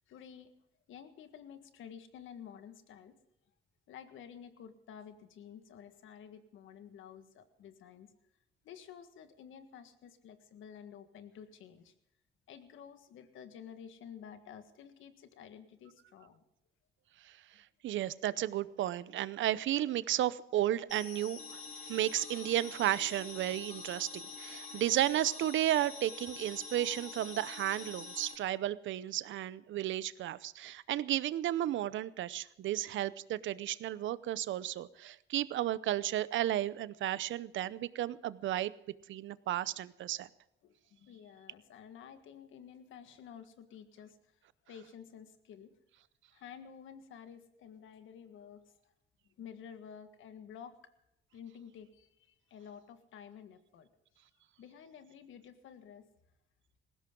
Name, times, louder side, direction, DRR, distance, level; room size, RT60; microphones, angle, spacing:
voice 1, 0.1-0.5 0.9-3.1 3.9-8.1 8.6-11.9 12.5-16.4 40.6-44.3 44.6-45.7 46.3-48.9 49.4-50.7 51.3-53.9 54.6-56.1, left 8 dB, 80° left, 9 dB, 1.7 m, -51 dB
voice 2, 17.8-21.6 21.9-38.7 39.1-40.3, right 13 dB, 75° right, 17 dB, 0.7 m, -33 dB
sound 1, 20.9-28.4, left 4 dB, 35° left, 3.2 m, -46 dB
19.5 x 16.5 x 3.8 m, 0.82 s
cardioid pair, 90°, 20 cm